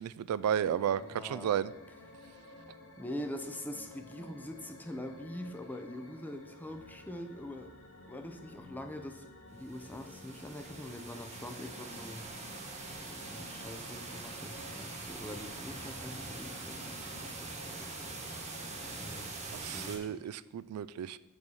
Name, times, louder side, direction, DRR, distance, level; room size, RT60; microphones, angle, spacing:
voice 1, 0.0-1.7 19.5-21.2, right 9 dB, 90° right, 17 dB, 0.3 m, -33 dB
sound 1, 0.6-19.3, left 2 dB, 70° left, 1.1 m, -53 dB
voice 2, 1.0-1.5 3.0-7.7 8.1-12.3 13.0-17.9 19.0-19.4 19.7-20.2, left 1 dB, 10° left, 6 dB, 0.5 m, -44 dB
sound 2, 9.6-20.0, right 3 dB, 30° right, 1.2 m, -44 dB
5.4 x 5.0 x 6.3 m, 0.90 s
head